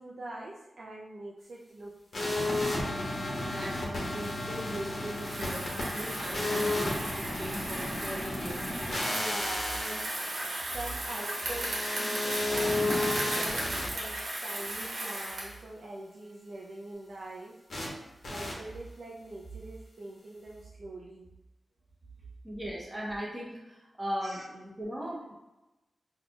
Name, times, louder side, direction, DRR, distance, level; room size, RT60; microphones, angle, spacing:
voice 1, 0.0-2.4 9.1-10.0 10.6-17.5 18.2-21.3 22.2-22.3 24.2-24.4, right 2 dB, 60° right, -3 dB, 0.4 m, -43 dB
sound 1, 2.1-13.9 17.7-17.9 18.2-18.5, left 1 dB, 75° left, 1.0 m, -33 dB
voice 2, 3.4-8.6 22.4-25.3, equal, 15° right, -5 dB, 1.0 m, -39 dB
Bicycle, 5.1-15.6, right 1 dB, 75° right, 1.1 m, -36 dB
4.2 x 2.8 x 2.3 m, 1.0 s
wide cardioid pair, 155°, 0 cm